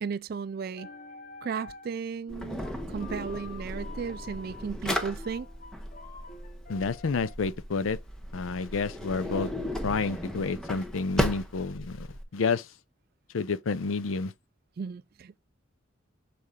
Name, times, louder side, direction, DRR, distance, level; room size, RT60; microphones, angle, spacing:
voice 1, 0.0-0.9 1.4-5.5 14.8-15.4, right 6 dB, 50° right, 0.3 m, -35 dB
sound 1, 0.7-2.0 2.3-7.4, left 4 dB, 40° left, 0.7 m, -48 dB
Drawer open or close, 2.3-12.2, left 1 dB, 5° left, 0.8 m, -35 dB
voice 2, 6.7-8.0 8.3-9.5 9.8-12.7 13.3-14.3, left 4 dB, 85° left, 0.5 m, -29 dB
6.5 x 4.2 x 3.7 m
head